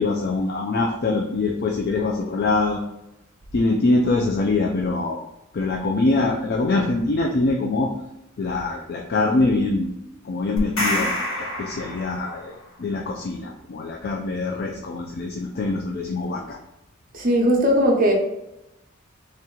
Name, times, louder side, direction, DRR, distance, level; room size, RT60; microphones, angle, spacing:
voice 1, 0.0-2.8 3.5-5.2 5.5-7.9 8.4-9.9 10.2-12.5 12.8-16.6, left 3 dB, 50° left, 1 dB, 0.4 m, -23 dB
sound 1, 10.6-12.5, equal, 80° left, 1.0 m, -27 dB
voice 2, 17.1-18.1, equal, 45° right, 0 dB, 0.8 m, -18 dB
3.2 x 2.9 x 3.7 m, 0.90 s
head